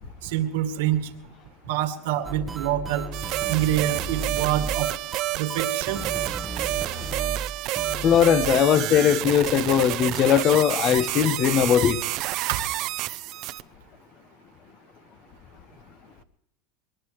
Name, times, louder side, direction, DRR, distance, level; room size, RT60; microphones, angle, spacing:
voice 1, 0.2-1.0 1.7-3.0 3.5-4.9 5.4-6.0 12.5-12.6, right 12 dB, 80° right, 2.1 m, -26 dB
sound 1, 2.2-8.6, right 4 dB, 10° right, 1.1 m, -34 dB
sound 2, 3.1-13.6, right 17 dB, 45° right, 0.6 m, -29 dB
voice 2, 8.0-12.0, left 9 dB, 35° left, 0.9 m, -20 dB
22.5 x 20.0 x 3.1 m
supercardioid pair, 155°, 0 cm